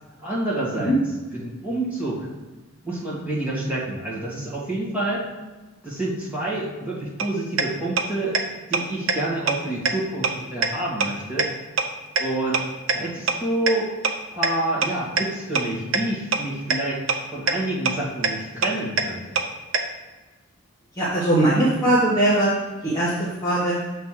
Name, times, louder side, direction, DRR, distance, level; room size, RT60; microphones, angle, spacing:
voice 1, 0.2-0.9 1.4-2.3 2.8-5.2 5.8-8.4 8.7-11.5 12.2-12.6 12.9-13.9 14.3-17.0 17.3-19.4, right 1 dB, 10° right, -8 dB, 1.8 m, -28 dB
sound 1, 7.2-7.3 7.6-7.7 8.0-8.1 8.3-8.4 8.7-8.8 9.1-9.2 9.5-9.6 9.9-10.0 10.2-10.3 10.6-10.7 11.0-11.1 11.4-11.5 11.8-11.9 12.2-12.3 12.5-12.6 12.9-13.0 13.3-13.4 13.7-13.8 14.0-14.1 14.4-14.5 14.8-14.9 15.2-15.3 15.6-15.7 15.9-16.0 16.3-16.4 16.7-16.8 17.1-17.2 17.5-17.6 17.9-18.0 18.2-18.3 18.6-18.7 19.0-19.1 19.4-19.5 19.7-19.8, right 5 dB, 65° right, 0.6 m, -20 dB
voice 2, 21.0-22.5 22.8-23.7, right 1 dB, 15° left, -8 dB, 1.1 m, -20 dB
6.9 x 3.2 x 5.8 m, 1.2 s
head